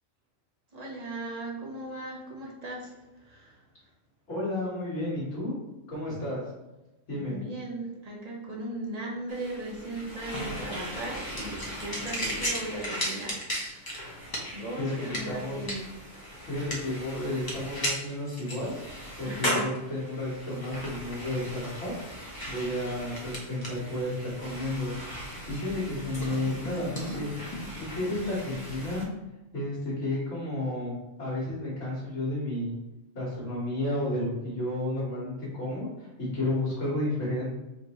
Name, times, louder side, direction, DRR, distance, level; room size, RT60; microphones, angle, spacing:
voice 1, 0.7-3.6 7.2-16.5 19.2-19.5, right 2 dB, 35° right, -2 dB, 1.0 m, -38 dB
voice 2, 4.3-5.5 5.9-6.4 7.1-7.4 14.7-15.6 16.5-18.7 19.2-21.9 22.5-24.9 25.5-29.0 29.5-32.7 33.2-37.5, left 1 dB, 70° left, -10 dB, 1.8 m, -32 dB
sound 1, 9.3-29.0, equal, 20° left, 0.8 m, -36 dB
5.0 x 3.1 x 2.9 m, 1.0 s
omnidirectional pair, 1.3 m